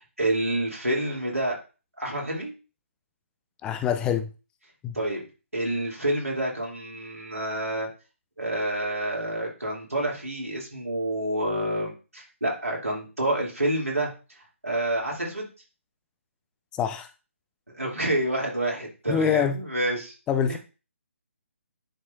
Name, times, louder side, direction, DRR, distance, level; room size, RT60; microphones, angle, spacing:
voice 1, 0.2-1.6 2.0-2.5 4.9-5.2 5.5-7.9 8.4-14.1 14.6-15.5 17.7-20.1 20.5-20.6, right 1 dB, 85° right, -3 dB, 2.8 m, -28 dB
voice 2, 3.6-4.3 4.8-5.0 16.7-17.1 19.1-19.6 20.3-20.6, left 8 dB, 10° left, 9 dB, 0.4 m, -25 dB
10.0 x 4.7 x 2.5 m, 0.32 s
figure-of-eight pair, 140°, 7 cm